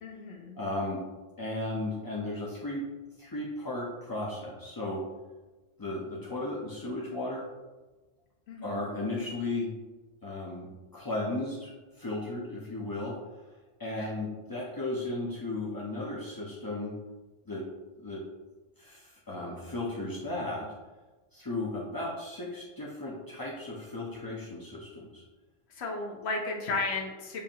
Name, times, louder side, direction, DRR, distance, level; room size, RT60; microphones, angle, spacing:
voice 1, 0.0-0.6 8.5-8.8 13.9-14.1 25.7-27.4, left 3 dB, 60° left, 1 dB, 1.0 m, -34 dB
voice 2, 0.6-1.0 1.4-2.9 3.2-5.0 5.8-7.4 8.6-9.7 10.2-13.5 13.8-16.9 17.5-17.6 18.0-18.2 18.8-20.7 21.3-25.2, left 2 dB, 30° left, -5 dB, 0.4 m, -35 dB
6.9 x 2.5 x 2.8 m, 1.2 s
omnidirectional pair, 1.3 m